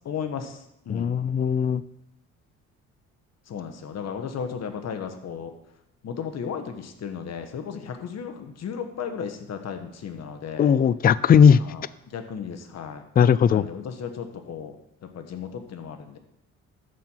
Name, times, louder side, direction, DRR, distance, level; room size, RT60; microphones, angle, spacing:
voice 1, 0.0-1.1 3.5-5.5 6.0-10.7 11.6-13.0 13.5-14.8 15.1-16.2, left 7 dB, 60° left, 6 dB, 1.3 m, -35 dB
voice 2, 0.9-1.8 10.6-11.6 13.2-13.6, left 7 dB, 30° left, 17 dB, 0.4 m, -18 dB
13.0 x 4.6 x 5.7 m, 0.82 s
cardioid pair, 90°, 30 cm